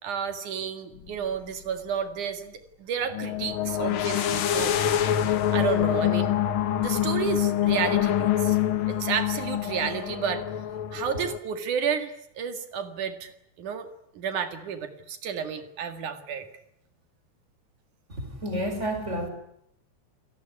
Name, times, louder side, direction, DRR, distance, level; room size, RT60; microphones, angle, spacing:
voice 1, 0.0-4.7 5.5-6.3 6.8-8.6 8.9-10.4 10.9-13.3 13.6-13.9 14.2-16.5, right 7 dB, 85° right, 3.5 m, -31 dB
sound 1, 1.0-1.1 3.1-11.4, left 11 dB, 60° left, 1.6 m, -25 dB
voice 2, 18.1-19.3, equal, 20° right, 5.4 m, -30 dB
28.5 x 18.0 x 9.7 m
omnidirectional pair, 3.4 m